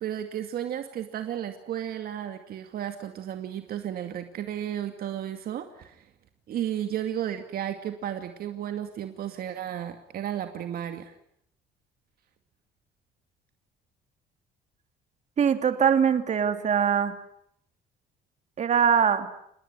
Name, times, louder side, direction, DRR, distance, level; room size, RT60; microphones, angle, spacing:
voice 1, 0.0-6.1 6.5-11.1, right 10 dB, 60° right, 7 dB, 2.4 m, -33 dB
voice 2, 15.4-17.1 18.6-19.3, right 7 dB, 45° right, 8 dB, 3.0 m, -22 dB
28.0 x 20.0 x 9.8 m, 0.72 s
cardioid pair, 110°, 17 cm